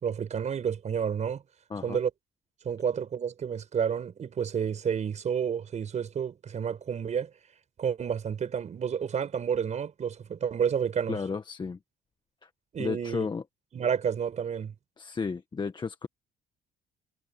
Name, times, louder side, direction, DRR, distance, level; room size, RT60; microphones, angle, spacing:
voice 1, 0.0-1.4 1.8-2.1 2.6-7.3 7.8-11.2 12.7-13.3 13.7-14.7, right 7 dB, 45° right, 5.9 m, -30 dB
voice 2, 11.1-11.8 12.4-12.5 12.8-13.4 15.0-16.1, left 5 dB, 25° left, 1.6 m, -33 dB
cardioid pair, 110°, 17 cm